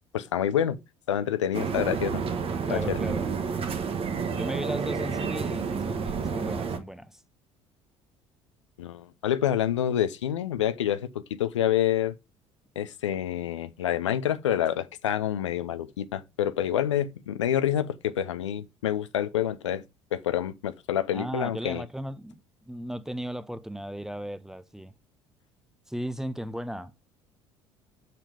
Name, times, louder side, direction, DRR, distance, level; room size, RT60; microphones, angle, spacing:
voice 1, 0.1-0.8 1.1-2.2 2.7-3.0 8.8-11.1 11.4-12.1 12.8-19.8 20.1-21.8, left 10 dB, 75° left, 0.6 m, -27 dB
sound 1, 1.5-6.8, right 6 dB, 35° right, 1.3 m, -30 dB
voice 2, 2.7-3.3 4.3-7.2 21.1-24.9 25.9-26.9, equal, 5° right, 0.7 m, -36 dB
7.3 x 6.6 x 5.0 m
figure-of-eight pair, 55°, 16 cm